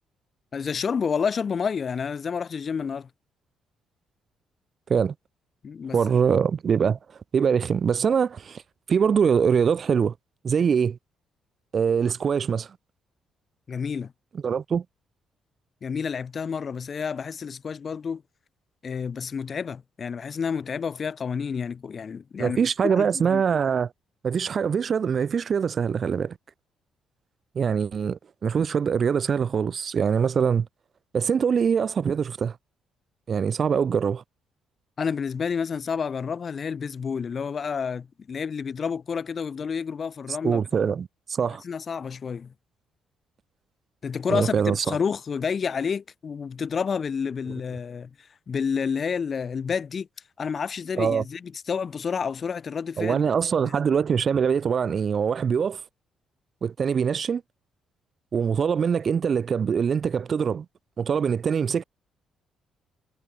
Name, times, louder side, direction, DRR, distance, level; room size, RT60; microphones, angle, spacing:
voice 1, 0.5-3.1 5.6-6.0 13.7-14.1 15.8-18.2 18.8-22.6 22.8-23.4 35.0-40.6 41.6-42.5 44.0-50.1 50.4-53.2 53.6-53.7, left 6 dB, 35° left, 4.8 m, -29 dB
voice 2, 5.9-7.0 7.3-8.6 8.9-10.1 10.4-11.0 11.7-12.7 14.4-14.8 22.4-23.9 24.2-26.4 27.6-30.7 31.1-32.6 33.3-34.2 40.4-41.6 44.3-45.0 51.0-51.2 53.0-55.8 56.6-57.4 58.3-60.7 61.0-61.8, right 6 dB, 35° right, 2.0 m, -23 dB
cardioid pair, 160°, 0 cm